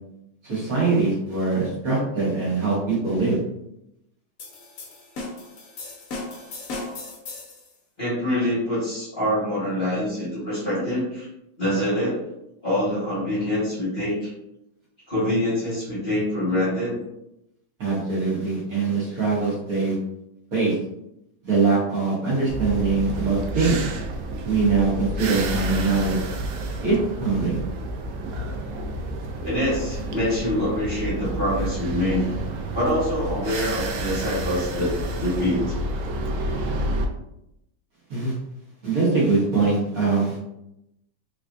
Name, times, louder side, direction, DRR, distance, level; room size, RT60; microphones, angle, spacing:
voice 1, 0.4-3.4 17.8-19.9 20.5-20.7 21.4-23.8 24.4-26.2 26.8-27.6 38.1-38.3 38.8-40.4, right 4 dB, 50° right, -7 dB, 1.5 m, -22 dB
sound 1, 4.4-7.7, left 2 dB, 60° left, 0.9 m, -36 dB
voice 2, 8.0-11.3 11.6-12.2 12.6-14.3 15.1-17.0 29.4-32.2 32.7-34.9 35.2-35.8, left 1 dB, 30° left, -9 dB, 1.3 m, -25 dB
sound 2, 22.5-37.1, right 1 dB, 85° right, 0.7 m, -30 dB
3.4 x 3.2 x 2.5 m, 0.83 s
omnidirectional pair, 2.1 m